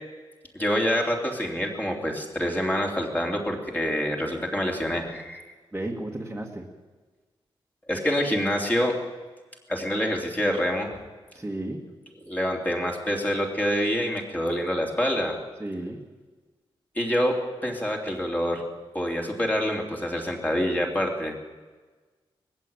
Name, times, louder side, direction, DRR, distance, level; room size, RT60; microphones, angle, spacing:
voice 1, 0.5-5.4 7.9-8.9 9.7-10.9 12.2-15.3 16.9-18.6 18.9-21.3, equal, 15° left, 0 dB, 2.9 m, -26 dB
voice 2, 5.7-6.7 11.3-11.8 15.6-16.0, right 1 dB, 10° right, -2 dB, 1.8 m, -33 dB
20.5 x 15.0 x 8.8 m, 1.3 s
wide cardioid pair, 165°, 10 cm